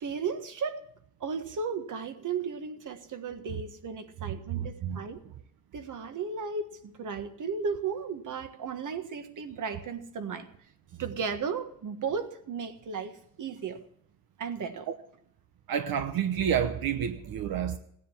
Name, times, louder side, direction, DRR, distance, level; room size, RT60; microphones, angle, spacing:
voice 1, 0.0-0.8 1.2-5.2 5.7-10.5 11.0-13.1 13.4-13.8 14.4-14.9, right 5 dB, 60° right, 1.6 m, -35 dB
voice 2, 4.2-5.0 14.9-15.0 15.7-17.8, right 8 dB, 85° right, 1.1 m, -30 dB
17.5 x 10.0 x 7.2 m
wide cardioid pair, 140°, 35 cm